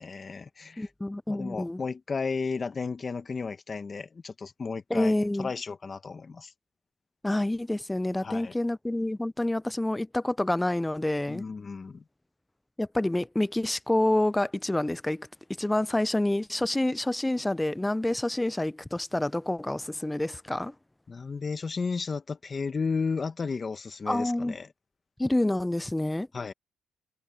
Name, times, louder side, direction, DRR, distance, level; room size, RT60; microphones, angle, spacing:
voice 1, 0.0-0.9 1.3-6.5 8.2-8.6 11.3-12.0 21.1-24.7 26.3-26.5, left 4 dB, 35° left, 1.1 m, -33 dB
voice 2, 0.8-1.8 4.9-5.5 7.2-11.4 12.8-15.3 15.6-20.7 24.1-24.6 25.2-26.3, left 1 dB, 10° left, 0.4 m, -28 dB
cardioid pair, 90°, 0 cm